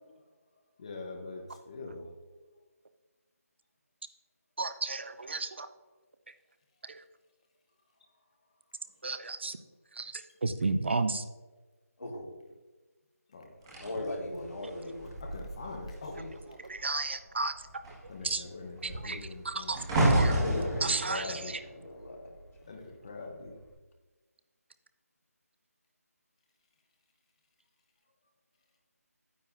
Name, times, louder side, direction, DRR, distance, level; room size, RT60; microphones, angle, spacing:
voice 1, 0.8-1.4 1.7-2.1 13.3-13.4 15.3-16.1 18.1-19.7 20.5-20.7 21.1-21.5 22.7-23.5, left 3 dB, 25° left, 2 dB, 0.8 m, -42 dB
voice 2, 4.6-5.7 6.9-7.0 9.0-9.6 9.9-11.2 16.8-17.5 18.2-18.4 18.8-19.8 20.1-20.4 20.8-21.6, right 3 dB, 45° right, 11 dB, 0.5 m, -33 dB
sound 1, 13.7-16.4 16.7-17.1 17.4-22.7 23.4-23.7, right 1 dB, 15° right, 1.5 m, -31 dB
voice 3, 13.8-15.1 16.2-16.3 20.3-22.3, left 1 dB, 80° left, -1 dB, 2.5 m, -39 dB
9.3 x 9.1 x 2.5 m, 1.2 s
figure-of-eight pair, 175°, 9 cm